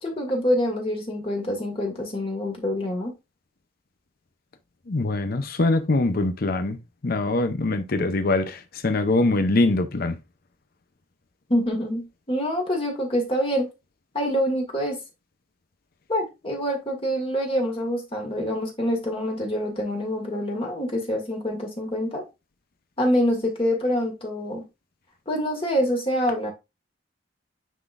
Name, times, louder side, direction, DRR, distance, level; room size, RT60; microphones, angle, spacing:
voice 1, 0.0-3.1 11.5-13.7 14.1-15.0 16.1-22.2 23.0-24.6 25.3-26.5, equal, 30° left, 1.9 m, -26 dB
voice 2, 4.9-10.2, left 2 dB, 50° left, 0.7 m, -23 dB
9.3 x 4.0 x 2.5 m
head